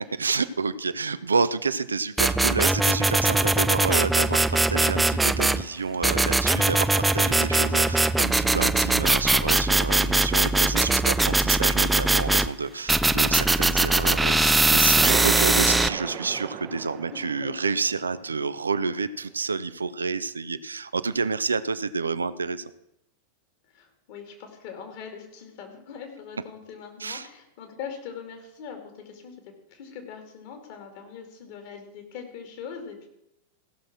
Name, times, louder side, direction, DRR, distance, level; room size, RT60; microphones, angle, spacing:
voice 1, 0.2-22.7 27.0-27.3, right 4 dB, 75° right, 14 dB, 0.5 m, -29 dB
sound 1, 2.2-5.6 6.0-12.5 12.9-15.9, right 2 dB, 5° right, 0.4 m, -21 dB
sound 2, 15.0-18.8, right 10 dB, 35° right, 0.8 m, -34 dB
voice 2, 17.1-17.5 23.7-29.3 29.7-33.1, left 6 dB, 50° left, 4 dB, 2.6 m, -41 dB
16.0 x 6.3 x 6.1 m, 0.81 s
figure-of-eight pair, 90°, 0 cm